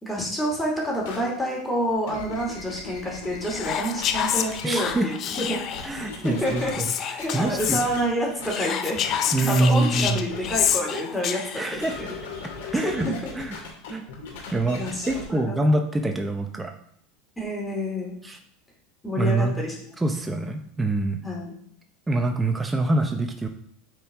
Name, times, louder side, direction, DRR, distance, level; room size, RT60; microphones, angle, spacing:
voice 1, 0.0-5.6 6.2-6.8 7.2-9.0 9.4-12.1 12.8-13.2 14.8-15.6 17.4-18.2 19.0-19.7 21.2-21.5, equal, 10° left, -3 dB, 2.7 m, -28 dB
sound 1, 1.0-1.2 1.9-4.9 5.3-6.9 7.2-8.1 8.4-8.5 9.0-9.3 9.8-10.7 11.7-15.2, left 4 dB, 80° left, 2.5 m, -38 dB
Whispering, 3.4-6.0 6.7-7.9 8.5-11.8, left 9 dB, 40° left, 0.6 m, -28 dB
voice 2, 4.6-5.1 5.8-6.9 7.3-7.8 9.3-10.2 11.6-12.0 12.7-13.1 13.4-13.6 13.9-14.0 14.5-14.8 15.1-16.7 18.2-18.4 19.2-19.5 20.0-21.2 22.1-23.5, right 2 dB, 10° right, 4 dB, 0.8 m, -24 dB
8.9 x 4.5 x 3.7 m, 0.66 s
supercardioid pair, 115°, 0 cm